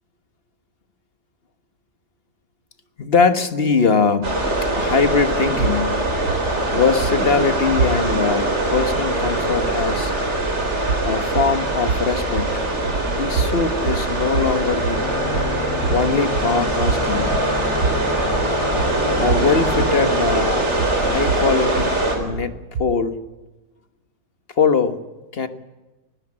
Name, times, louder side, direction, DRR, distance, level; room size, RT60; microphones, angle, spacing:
voice 1, 3.0-4.4 4.7-6.0 6.7-10.1 11.0-12.6 13.1-15.0 15.9-17.3 19.2-20.7 21.0-23.2 24.5-25.0 25.3-25.5, left 5 dB, 35° left, 10 dB, 1.4 m, -21 dB
sound 1, 4.2-22.2, right 1 dB, 35° right, 4.3 m, -22 dB
sound 2, 5.6-8.4 10.8-23.1, right 5 dB, 70° right, 1.6 m, -28 dB
sound 3, 14.9-20.2, left 6 dB, 90° left, 2.5 m, -31 dB
20.0 x 16.0 x 9.9 m, 1.1 s
omnidirectional pair, 1.9 m